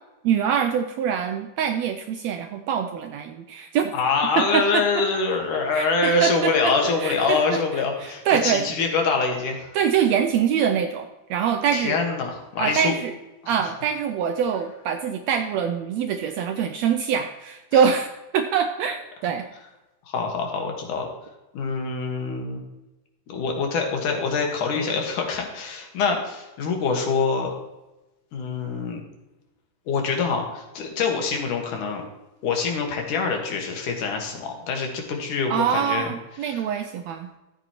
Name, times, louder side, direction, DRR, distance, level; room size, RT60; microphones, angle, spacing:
voice 1, 0.2-3.9 4.4-4.8 5.7-6.7 7.0-8.7 9.7-12.0 12.6-13.1 13.5-18.1 18.3-19.0 19.2-19.4 35.5-37.3, right 8 dB, 85° right, 6 dB, 1.6 m, -24 dB
voice 2, 3.9-9.7 11.7-12.9 17.7-17.9 20.1-21.1 21.5-22.7 23.3-27.5 28.3-29.0 29.9-32.0 32.4-36.1 36.4-36.6, left 4 dB, 80° left, 2 dB, 3.1 m, -25 dB
13.5 x 8.1 x 3.0 m, 1.0 s
omnidirectional pair, 3.6 m